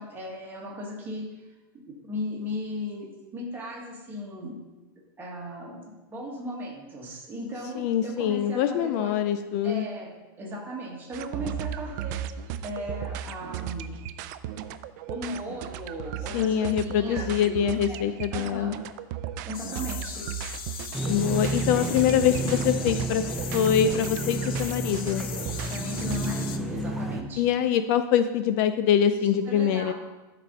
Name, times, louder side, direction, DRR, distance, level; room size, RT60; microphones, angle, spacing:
voice 1, 0.0-1.5 1.8-4.6 5.2-9.2 9.6-12.2 12.6-14.0 15.1-18.8 19.4-20.3 25.3-27.5 29.5-29.9, left 1 dB, 15° right, -2 dB, 1.6 m, -37 dB
voice 2, 7.8-9.9 16.3-18.8 21.1-25.2 27.4-29.9, left 9 dB, 45° left, 10 dB, 0.4 m, -24 dB
sound 1, 11.1-26.3, right 10 dB, 50° right, 0.4 m, -36 dB
sound 2, 19.5-26.6, left 7 dB, 90° left, 0.8 m, -38 dB
sound 3, 20.9-27.2, right 2 dB, ahead, 0.6 m, -31 dB
12.0 x 4.2 x 5.2 m, 1.1 s
supercardioid pair, 160°, 12 cm